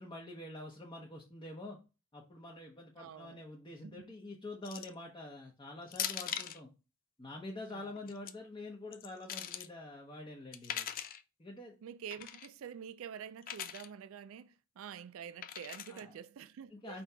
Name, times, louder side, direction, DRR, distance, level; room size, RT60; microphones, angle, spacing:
voice 1, 0.0-1.8 2.1-6.7 7.2-10.9 11.4-11.7 15.9-16.2 16.7-17.0, left 2 dB, 20° left, 0.8 m, -46 dB
voice 2, 3.0-3.4 3.8-4.0 7.7-8.0 11.8-17.0, right 8 dB, 65° right, 0.3 m, -47 dB
sound 1, 4.6-5.0 5.9-6.6 7.9-8.3 8.9-9.7 10.5-11.2 12.1-12.5 13.4-13.9 15.4-16.0, left 9 dB, 40° left, 0.4 m, -40 dB
5.1 x 2.8 x 3.4 m
head